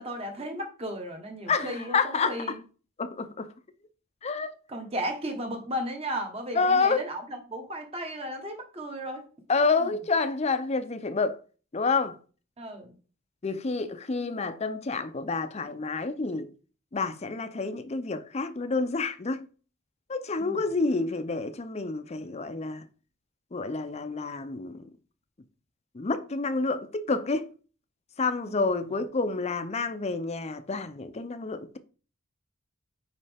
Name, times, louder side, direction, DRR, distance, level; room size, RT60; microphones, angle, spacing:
voice 1, 0.0-2.6 4.7-9.2 9.8-9.9 12.6-13.0 20.4-20.6 28.4-28.6 28.9-29.0, equal, 30° right, 1.1 m, -35 dB
voice 2, 1.5-2.4 3.0-3.5 4.2-4.5 6.5-7.0 9.5-11.4 11.7-12.2 13.4-16.5 16.9-19.4 20.1-22.9 23.5-24.9 25.9-27.5 28.2-31.8, left 4 dB, 30° left, 0.5 m, -28 dB
5.4 x 5.0 x 3.5 m
head